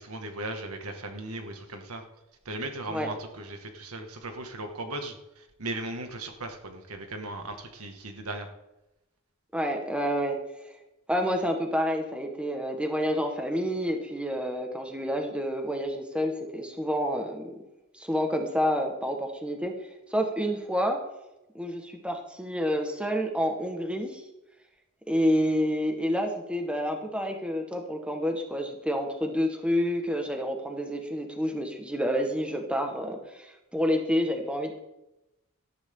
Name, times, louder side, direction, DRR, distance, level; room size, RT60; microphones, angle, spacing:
voice 1, 0.0-2.0 2.5-8.5, right 2 dB, 80° right, 4 dB, 2.2 m, -37 dB
voice 2, 9.5-10.4 11.1-17.5 17.9-19.7 20.1-21.0 21.5-24.2 25.1-34.8, equal, 5° right, 3 dB, 1.7 m, -28 dB
18.5 x 13.5 x 3.9 m, 0.94 s
head